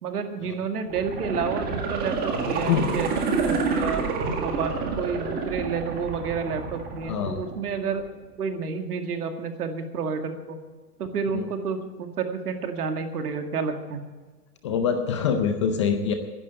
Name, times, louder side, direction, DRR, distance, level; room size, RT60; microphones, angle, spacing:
voice 1, 0.0-4.0 4.4-8.0 8.4-10.6 11.0-14.0, right 5 dB, 70° right, 5 dB, 2.1 m, -30 dB
sound 1, 0.9-7.9 8.2-8.3, right 4 dB, 20° right, 1.7 m, -28 dB
voice 2, 7.0-7.4 11.3-11.4 14.6-16.1, left 7 dB, 20° left, 7 dB, 0.5 m, -25 dB
11.5 x 11.0 x 8.1 m, 1.3 s
hypercardioid pair, 145°, 47 cm